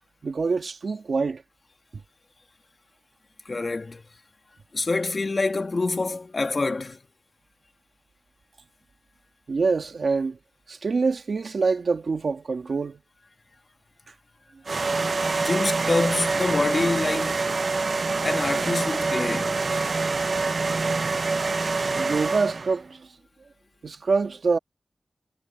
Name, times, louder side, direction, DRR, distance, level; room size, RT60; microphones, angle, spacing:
voice 1, 0.2-1.4 9.5-10.4 10.7-13.0 22.0-23.1 23.8-24.6, right 4 dB, 80° right, 2.0 m, -25 dB
voice 2, 3.4-4.0 4.7-7.0 15.4-17.5 18.2-19.6, left 3 dB, 55° left, 2.2 m, -26 dB
sound 1, 14.7-22.8, right 3 dB, 65° right, 0.8 m, -25 dB
wide cardioid pair, 60°, 0 cm